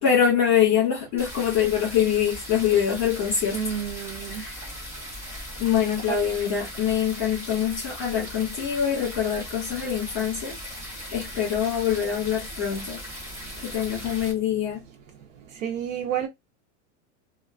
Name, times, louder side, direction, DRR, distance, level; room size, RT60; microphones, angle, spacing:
voice 1, 0.0-3.8 4.3-4.6 5.6-10.6 11.1-13.0 13.6-14.8, left 8 dB, 40° left, 1.5 m, -24 dB
sound 1, 1.2-14.3, equal, 5° right, 0.9 m, -38 dB
voice 2, 3.5-4.4 6.1-6.2 15.5-16.3, right 9 dB, 75° right, 0.7 m, -29 dB
3.0 x 2.3 x 2.3 m
supercardioid pair, 170°, 40 cm